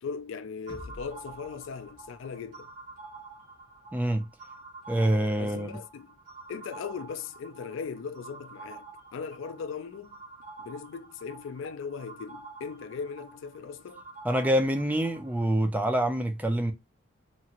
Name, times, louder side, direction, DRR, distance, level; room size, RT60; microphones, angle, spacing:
voice 1, 0.0-2.7 5.4-6.2 6.5-10.2 10.6-14.0, left 5 dB, 70° left, 0.3 m, -38 dB
sound 1, 0.7-4.6, left 1 dB, 25° left, 0.8 m, -52 dB
sound 2, 0.7-15.4, right 3 dB, 40° right, 0.7 m, -48 dB
voice 2, 3.9-4.3 4.9-5.8 14.2-16.7, right 1 dB, 10° right, 0.3 m, -26 dB
2.8 x 2.5 x 2.8 m
head